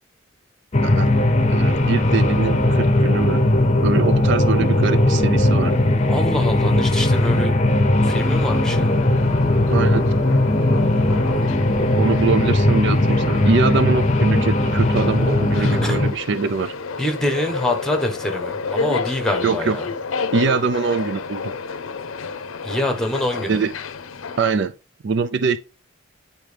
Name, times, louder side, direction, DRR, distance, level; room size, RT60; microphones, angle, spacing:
sound 1, 0.7-16.1, left 1 dB, 35° left, 0.7 m, -18 dB
voice 1, 1.5-3.5 3.8-5.8 9.7-10.1 11.9-16.7 19.4-19.8 20.3-21.6 23.5-23.7 24.4-24.7 25.0-25.6, right 4 dB, 60° right, 0.4 m, -23 dB
voice 2, 6.1-7.5 8.0-8.9 15.6-16.0 17.0-19.9 22.6-23.6, left 1 dB, 5° left, 1.1 m, -25 dB
sound 2, 8.1-24.5, left 4 dB, 80° left, 0.6 m, -31 dB
9.2 x 4.4 x 3.3 m
head